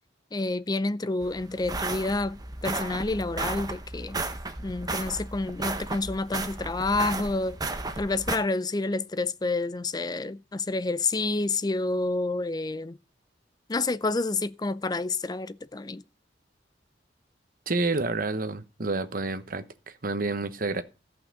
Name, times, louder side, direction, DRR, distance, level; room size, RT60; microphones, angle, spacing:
voice 1, 0.3-4.2 4.6-7.6 8.0-13.0 13.7-16.0, left 3 dB, 20° left, 0.5 m, -29 dB
sound 1, 1.2-8.4, right 3 dB, 20° right, 1.1 m, -34 dB
voice 2, 17.7-20.8, right 3 dB, 50° right, 1.1 m, -29 dB
13.5 x 5.8 x 6.6 m
head